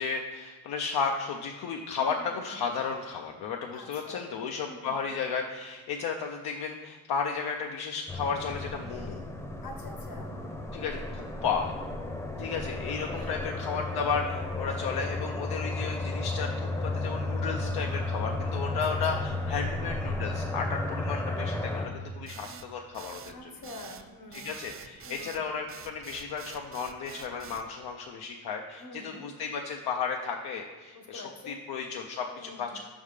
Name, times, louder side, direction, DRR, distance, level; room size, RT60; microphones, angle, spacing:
voice 1, 0.0-9.3 10.7-11.7 12.4-23.5 24.3-32.8, left 5 dB, 85° left, 2 dB, 0.5 m, -34 dB
voice 2, 2.0-2.7 3.7-4.3 4.6-4.9 9.6-10.8 13.1-13.4 18.7-18.8 19.1-19.2 23.3-24.5 25.0-25.3 28.8-29.3 30.9-31.6 32.3-32.8, left 2 dB, 65° left, 3 dB, 1.0 m, -46 dB
sound 1, 8.1-21.9, left 2 dB, 10° left, 0.6 m, -33 dB
sound 2, 22.3-27.7, right 7 dB, 35° right, 0.4 m, -46 dB
5.5 x 3.5 x 4.8 m, 1.4 s
cardioid pair, 65°, 37 cm